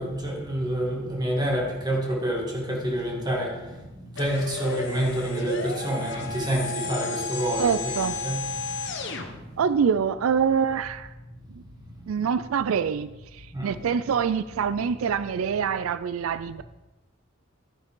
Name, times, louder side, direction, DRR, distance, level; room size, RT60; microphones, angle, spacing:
voice 1, 0.0-3.6 4.2-8.4 13.5-13.7, right 1 dB, 20° right, -1 dB, 2.2 m, -28 dB
sound 1, 4.2-9.3, left 4 dB, 60° left, 1.2 m, -33 dB
voice 2, 7.6-8.2 9.6-11.1 12.1-16.6, right 7 dB, 90° right, 14 dB, 0.4 m, -25 dB
12.5 x 9.6 x 3.7 m, 1.1 s
head